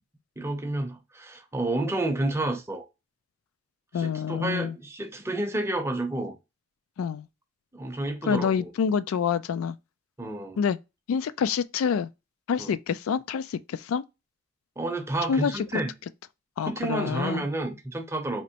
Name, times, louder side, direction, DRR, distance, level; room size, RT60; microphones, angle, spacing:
voice 1, 0.4-2.9 4.0-6.4 7.7-8.7 10.2-10.6 12.6-12.7 14.8-15.9 16.6-18.4, right 2 dB, 15° right, 0.6 m, -30 dB
voice 2, 3.9-4.8 7.0-7.3 8.2-9.8 10.6-10.8 11.1-12.1 12.5-14.0 15.3-15.6 16.6-17.5, left 7 dB, 90° left, 0.3 m, -27 dB
4.3 x 3.0 x 2.8 m
head